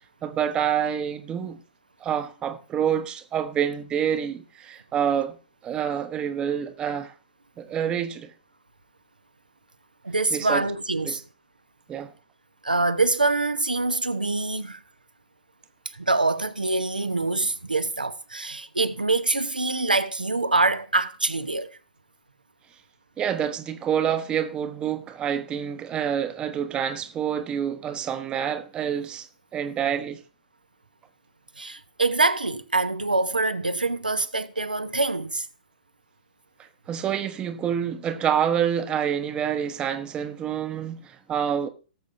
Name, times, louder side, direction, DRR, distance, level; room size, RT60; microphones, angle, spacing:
voice 1, 0.2-1.6 2.0-5.4 5.6-7.1 7.6-8.3 10.3-10.6 11.0-11.2 11.9-12.1 23.2-30.2 36.6-41.7, right 8 dB, 20° right, 0.9 m, -27 dB
voice 2, 10.0-11.2 12.6-14.8 15.8-21.8 31.6-35.5, right 3 dB, 85° right, 0.8 m, -25 dB
18.5 x 7.3 x 2.6 m
figure-of-eight pair, 110°, 5 cm